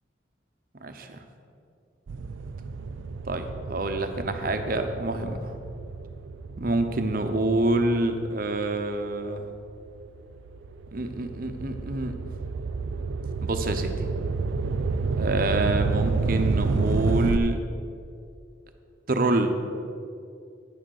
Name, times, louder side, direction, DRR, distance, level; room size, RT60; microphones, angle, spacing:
voice 1, 0.8-1.2 3.2-5.5 6.6-9.5 10.9-12.1 13.4-13.9 15.2-17.6 19.1-19.5, right 2 dB, 50° right, 6 dB, 0.8 m, -27 dB
sound 1, 2.1-8.8 9.4-17.4, right 4 dB, 85° right, 0.4 m, -30 dB
10.0 x 6.3 x 6.5 m, 2.5 s
head